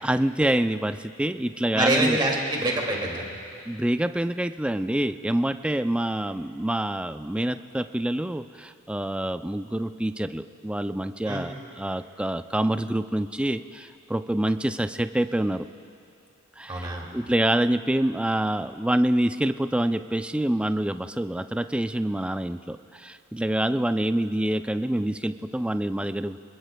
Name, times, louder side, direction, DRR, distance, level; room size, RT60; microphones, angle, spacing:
voice 1, 0.0-2.2 3.7-15.7 16.6-26.4, right 1 dB, 5° right, 10 dB, 0.3 m, -26 dB
voice 2, 1.7-3.3 11.3-11.5 16.7-17.1, right 1 dB, 20° right, -1 dB, 2.3 m, -25 dB
28.0 x 21.5 x 2.2 m, 2.5 s
head